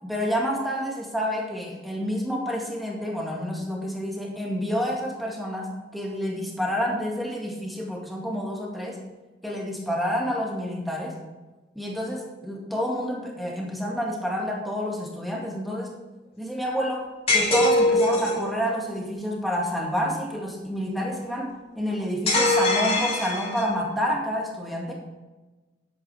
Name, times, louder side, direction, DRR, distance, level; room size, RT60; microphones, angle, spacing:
voice 1, 0.0-9.0 9.4-11.2 11.8-16.0 16.4-17.1 17.3-24.9, equal, ahead, -2 dB, 2.0 m, -29 dB
sound 1, 17.3-18.5 22.3-23.8, left 1 dB, 35° left, 2.7 m, -22 dB
10.0 x 8.4 x 5.0 m, 1.2 s
head